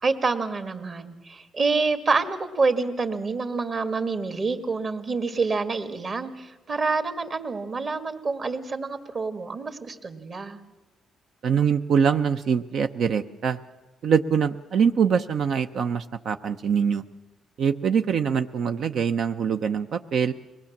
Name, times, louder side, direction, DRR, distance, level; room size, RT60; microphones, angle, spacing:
voice 1, 0.0-10.6, right 4 dB, 45° right, 7 dB, 1.9 m, -27 dB
voice 2, 11.4-13.6 14.0-17.0 17.6-20.3, right 7 dB, 65° right, 8 dB, 0.7 m, -23 dB
23.0 x 19.0 x 7.3 m, 1.1 s
cardioid pair, 90°, 0 cm